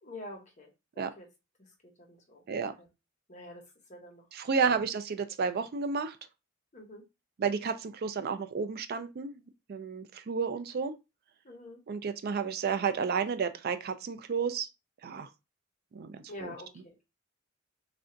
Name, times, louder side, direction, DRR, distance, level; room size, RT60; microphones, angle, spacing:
voice 1, 0.0-0.7 0.9-1.3 1.6-2.4 2.8-2.9 3.3-4.3 4.6-4.8 6.7-7.0 11.4-11.8 16.3-17.0, left 1 dB, 35° left, 1.1 m, -47 dB
voice 2, 4.3-6.2 7.4-9.4 9.7-10.9 11.9-14.7 15.0-15.3 15.9-16.5, right 5 dB, 50° right, 0.4 m, -31 dB
3.3 x 2.5 x 3.8 m
head